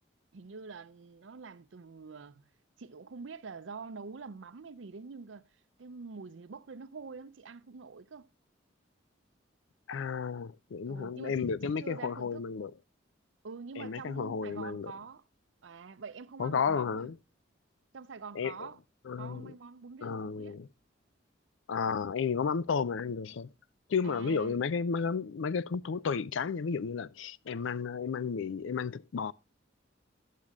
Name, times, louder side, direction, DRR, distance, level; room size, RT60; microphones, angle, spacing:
voice 1, 0.3-2.4 2.8-5.4 5.8-8.3 10.9-12.4 13.4-15.2 15.6-17.1 17.9-18.8 19.2-20.6 24.0-24.6, right 4 dB, 80° right, 0.6 m, -46 dB
voice 2, 9.9-12.7 13.8-14.9 16.4-17.2 18.4-18.7 19.1-19.5 20.0-20.7 21.7-23.5 23.9-29.3, left 5 dB, 85° left, 0.4 m, -32 dB
11.5 x 7.5 x 3.6 m
head